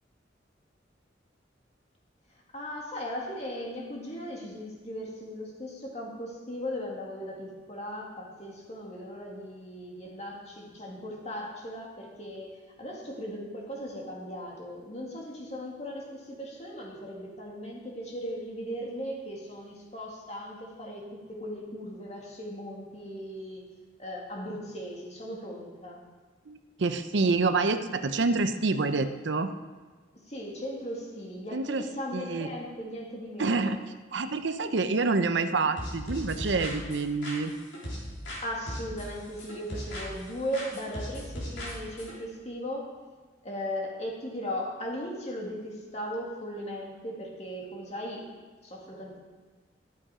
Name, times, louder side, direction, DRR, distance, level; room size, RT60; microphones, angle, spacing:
voice 1, 2.5-23.7 24.0-26.0 30.3-33.8 38.4-42.9 43.4-48.3 48.6-49.2, equal, 35° left, -2 dB, 2.1 m, -38 dB
voice 2, 26.5-29.5 31.5-31.9 32.1-32.5 33.4-33.8 34.1-37.5, right 3 dB, 70° right, 9 dB, 0.6 m, -27 dB
sound 1, 35.8-38.4 38.7-40.3 40.5-42.1, equal, 80° left, 3.8 m, -37 dB
12.5 x 7.8 x 4.9 m, 1.4 s
head